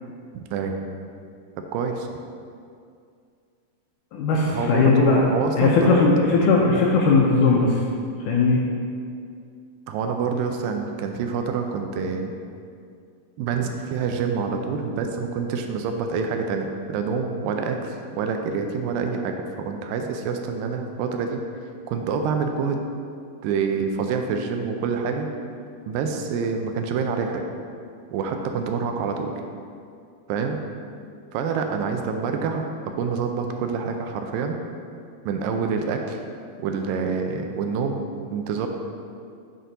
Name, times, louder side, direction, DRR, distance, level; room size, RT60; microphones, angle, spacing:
voice 1, 1.7-2.1 4.5-6.1 9.9-12.3 13.4-21.4 21.9-22.8 23.4-25.3 25.9-27.4 28.1-29.3 30.3-30.6 31.3-32.7 33.0-34.6 35.3-36.2 36.6-38.0 38.3-38.7, right 5 dB, 85° right, 4 dB, 2.2 m, -26 dB
voice 2, 4.1-5.2 5.6-7.7 8.3-8.6, left 4 dB, 80° left, -1 dB, 1.8 m, -18 dB
7.8 x 4.2 x 3.9 m, 2.3 s
omnidirectional pair, 4.1 m